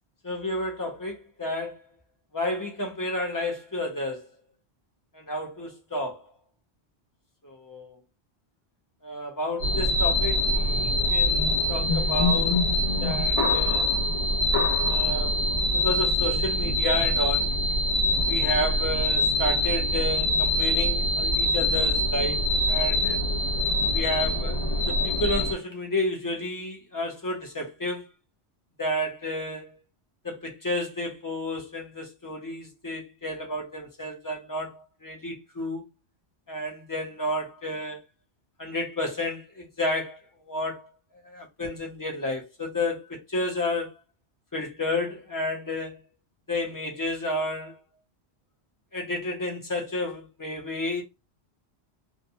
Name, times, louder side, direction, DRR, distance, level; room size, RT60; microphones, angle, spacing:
voice 1, 0.2-1.8 2.3-4.3 5.1-6.2 7.4-8.0 9.0-12.6 13.0-13.9 14.8-17.6 18.2-23.2 23.9-28.1 28.8-29.8 30.2-35.8 36.5-38.0 38.6-40.2 40.5-40.8 41.2-43.9 44.5-46.0 46.5-47.8 48.9-51.0, left 1 dB, 25° left, 0.6 m, -31 dB
sound 1, 9.6-25.5, left 1 dB, 85° left, 1.2 m, -24 dB
2.7 x 2.1 x 2.6 m
omnidirectional pair, 1.1 m